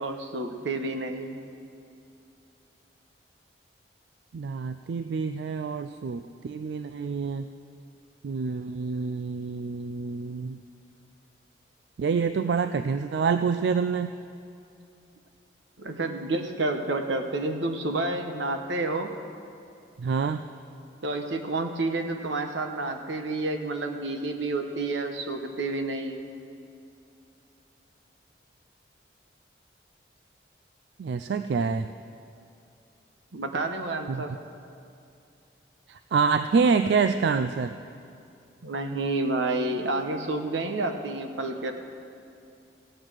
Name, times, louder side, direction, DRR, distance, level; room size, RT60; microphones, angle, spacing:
voice 1, 0.0-1.4 15.8-19.1 21.0-26.2 33.3-34.3 38.6-41.7, right 2 dB, 90° right, 5 dB, 1.1 m, -29 dB
voice 2, 4.3-7.5 8.2-10.6 12.0-14.1 20.0-20.4 31.0-31.9 34.1-34.2 35.9-37.7, right 5 dB, 70° right, 9 dB, 0.3 m, -27 dB
15.0 x 8.9 x 6.2 m, 2.6 s
head